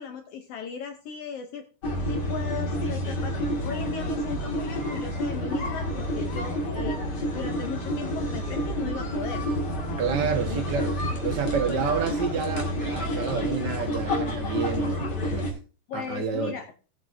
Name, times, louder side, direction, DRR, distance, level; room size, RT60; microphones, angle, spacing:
voice 1, 0.0-1.6 2.1-3.4 3.6-7.0 7.3-9.4 10.5-10.8 11.7-12.1 15.9-16.7, left 6 dB, 85° left, 1.3 m, -36 dB
sound 1, 1.8-15.5, equal, 35° left, 2.2 m, -29 dB
voice 2, 10.0-10.9 11.2-15.5 15.9-16.6, right 6 dB, 50° right, 1.3 m, -29 dB
18.5 x 7.8 x 2.6 m
omnidirectional pair, 3.8 m